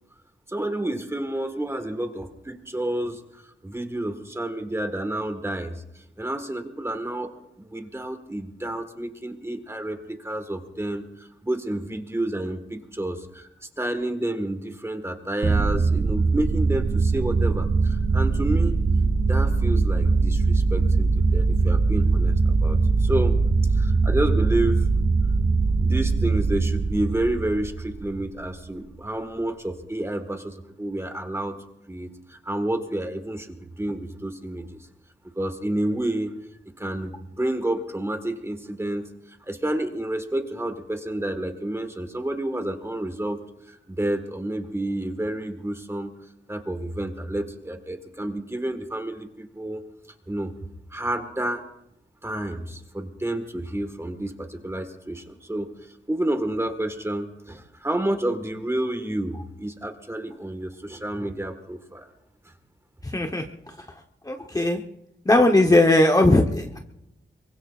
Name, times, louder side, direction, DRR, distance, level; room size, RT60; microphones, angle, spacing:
voice 1, 0.5-13.5 13.8-18.8 19.3-23.4 23.7-24.9 25.8-31.6 31.9-34.7 35.3-36.3 36.8-46.1 46.5-49.9 50.3-50.5 50.9-51.7 52.2-62.1, right 1 dB, 15° right, 7 dB, 1.5 m, -30 dB
sound 1, 15.4-28.3, right 4 dB, 30° right, 0.5 m, -21 dB
voice 2, 63.1-63.4 64.3-64.8 65.3-66.8, left 1 dB, 20° left, 3 dB, 0.9 m, -18 dB
23.5 x 23.5 x 2.4 m, 0.86 s
wide cardioid pair, 105°, 19 cm